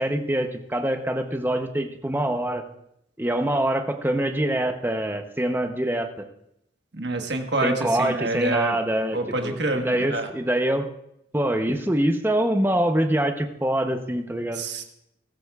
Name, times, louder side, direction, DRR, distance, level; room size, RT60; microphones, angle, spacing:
voice 1, 0.0-2.6 3.2-6.1 7.6-9.2 9.4-10.9 11.3-14.6, right 1 dB, 10° right, 6 dB, 0.7 m, -24 dB
voice 2, 6.9-8.8 9.1-10.3 14.5-14.8, right 2 dB, 60° right, 4 dB, 1.4 m, -27 dB
21.0 x 13.0 x 2.4 m, 0.80 s
head